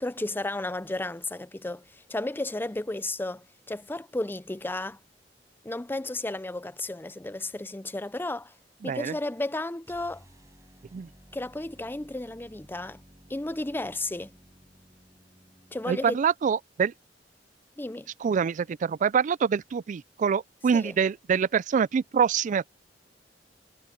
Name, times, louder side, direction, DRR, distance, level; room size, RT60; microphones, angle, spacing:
voice 1, 0.0-5.0 5.6-8.6 8.8-10.2 11.3-13.0 13.3-14.3 15.7-16.2 17.8-18.1 20.7-20.9, left 2 dB, 10° left, 0.5 m, -33 dB
voice 2, 8.8-9.1 10.9-11.1 15.9-16.9 18.2-22.7, right 6 dB, 45° right, 0.3 m, -25 dB
sound 1, 9.8-16.1, equal, 20° right, 5.9 m, -56 dB
head